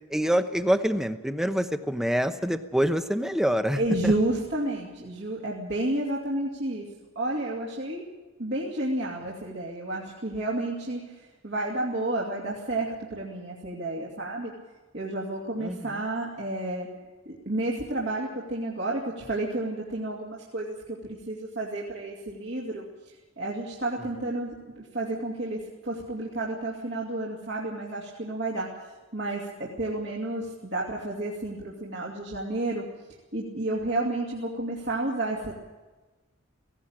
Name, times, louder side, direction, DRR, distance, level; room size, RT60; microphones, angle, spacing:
voice 1, 0.1-4.1 15.6-16.0, equal, ahead, 9 dB, 0.9 m, -26 dB
voice 2, 3.8-6.9 7.2-8.0 8.4-14.5 14.9-16.9 17.3-22.8 23.4-28.7 29.1-32.8 33.3-35.5, right 2 dB, 60° right, -4 dB, 2.6 m, -31 dB
17.5 x 17.0 x 8.9 m, 1.2 s
head